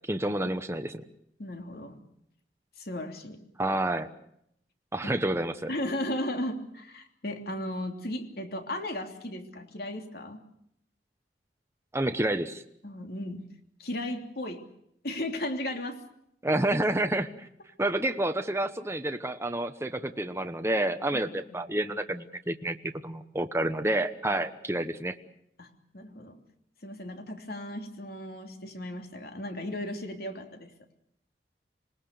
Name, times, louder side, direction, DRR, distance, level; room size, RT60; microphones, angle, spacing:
voice 1, 0.0-1.0 3.6-4.1 4.9-5.7 11.9-12.6 16.4-17.5 17.8-25.1, right 1 dB, 15° right, 7 dB, 1.0 m, -29 dB
voice 2, 1.4-2.0 2.8-3.4 5.7-10.4 12.8-13.4 13.8-14.6 15.0-16.0 21.1-21.2 24.7-24.8 25.6-25.7 25.9-26.4 26.8-30.7, left 1 dB, 55° left, 5 dB, 3.2 m, -35 dB
27.0 x 19.5 x 6.8 m, 0.74 s
head